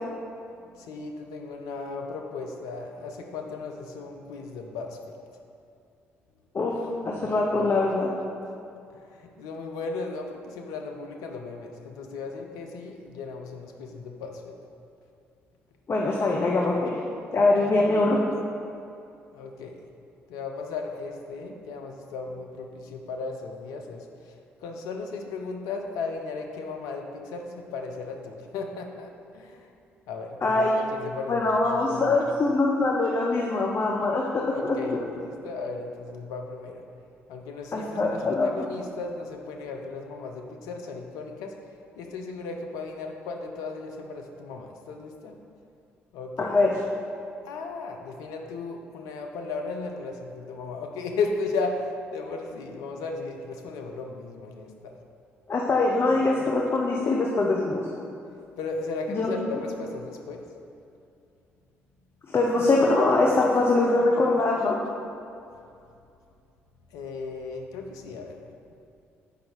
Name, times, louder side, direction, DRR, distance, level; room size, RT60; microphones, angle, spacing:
voice 1, 0.7-5.0 8.9-14.5 19.3-19.8 20.3-24.0 24.6-29.7 30.1-32.3 34.5-36.8 37.3-41.5 42.0-45.3 46.1-46.6 47.4-54.9 58.6-60.4 66.9-68.3, left 4 dB, 75° left, 2 dB, 0.7 m, -35 dB
voice 2, 7.0-8.1 15.9-17.0 17.3-18.2 30.4-30.7 31.3-35.0 37.7-38.5 46.5-46.7 55.5-57.8 59.1-59.4 62.3-64.8, left 2 dB, 40° left, -2 dB, 0.9 m, -23 dB
7.0 x 5.2 x 4.5 m, 2.5 s
hypercardioid pair, 45°, 6 cm